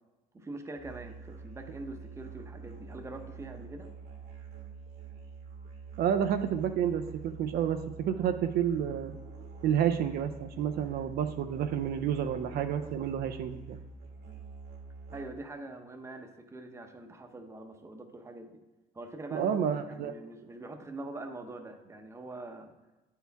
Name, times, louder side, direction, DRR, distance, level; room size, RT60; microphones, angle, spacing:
voice 1, 0.3-3.9 15.1-18.6 18.9-19.6 19.9-22.7, right 2 dB, 15° right, 5 dB, 0.7 m, -43 dB
Musical instrument, 0.8-15.5, right 4 dB, 85° right, 1.5 m, -47 dB
voice 2, 6.0-9.1 9.6-13.8 19.3-20.1, right 9 dB, 65° right, 7 dB, 0.4 m, -30 dB
9.1 x 4.5 x 3.4 m, 1.1 s
cardioid pair, 110°, 17 cm